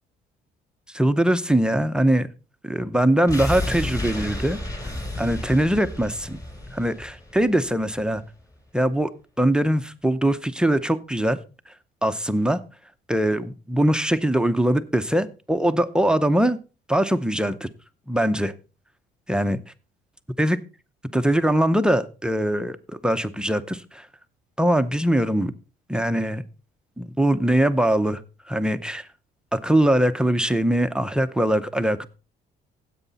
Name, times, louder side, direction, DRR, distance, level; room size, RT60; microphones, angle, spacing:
voice 1, 0.9-2.3 2.6-4.6 5.2-6.4 6.7-8.2 8.7-9.1 9.4-11.4 12.0-12.6 13.1-16.6 16.9-17.7 18.1-18.5 19.3-19.6 20.4-20.6 21.1-24.1 24.6-25.5 25.9-26.4 27.0-28.2 28.5-29.1 29.5-32.1, right 1 dB, 5° right, 0.7 m, -22 dB
sound 1, 3.3-8.2 8.5-8.6, left 1 dB, 20° left, 3.0 m, -32 dB
16.0 x 8.3 x 4.0 m
cardioid pair, 140°, 18 cm